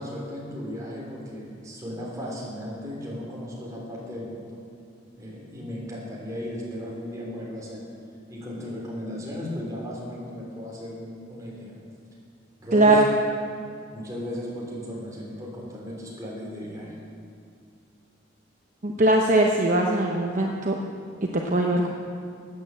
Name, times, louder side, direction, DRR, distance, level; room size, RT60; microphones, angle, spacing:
voice 1, 0.0-4.6 5.2-7.8 8.3-11.8 12.6-13.0 13.9-16.9, equal, 20° right, -4 dB, 3.4 m, -36 dB
voice 2, 12.7-13.0 18.8-20.8 21.3-21.9, right 2 dB, 40° right, 0 dB, 0.9 m, -20 dB
13.5 x 9.2 x 7.7 m, 2.4 s
head